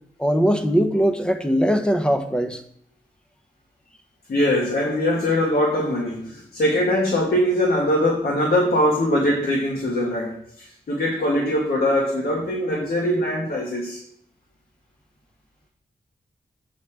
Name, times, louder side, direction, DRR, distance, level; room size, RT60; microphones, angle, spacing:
voice 1, 0.2-2.6, equal, 5° left, 7 dB, 0.7 m, -20 dB
voice 2, 4.3-14.0, left 1 dB, 65° left, -1 dB, 1.3 m, -22 dB
7.1 x 6.4 x 3.3 m, 0.66 s
wide cardioid pair, 100°, 16 cm